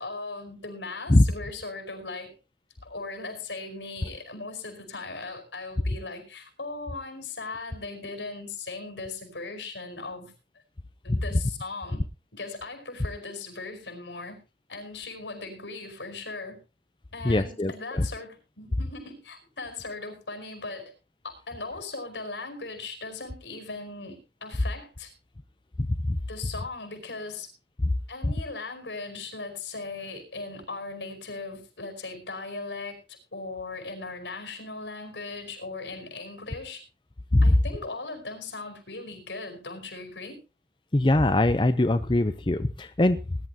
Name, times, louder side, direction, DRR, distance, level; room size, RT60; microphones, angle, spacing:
voice 1, 0.0-2.3 2.8-10.3 11.0-12.0 12.3-14.4 14.7-16.6 17.1-20.9 21.2-25.1 26.3-27.5 28.1-36.8 37.4-40.4, left 3 dB, 85° left, 6 dB, 4.8 m, -38 dB
voice 2, 17.2-18.1 25.8-26.2 28.2-28.3 37.3-37.6 40.9-43.4, left 1 dB, 25° left, 10 dB, 0.6 m, -22 dB
20.0 x 11.5 x 2.8 m, 0.30 s
head